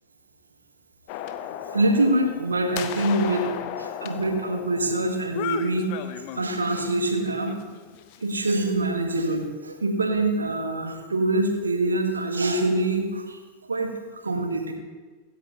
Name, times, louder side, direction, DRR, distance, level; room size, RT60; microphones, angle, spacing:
sound 1, 1.1-6.9 7.3-8.6, left 10 dB, 45° left, 0.7 m, -35 dB
voice 1, 1.7-3.5 3.8-7.6 8.2-13.4 13.7-13.9 14.2-14.7, right 2 dB, 75° right, 4 dB, 1.6 m, -25 dB
16.0 x 9.9 x 3.0 m, 1.4 s
figure-of-eight pair, 90°, 0 cm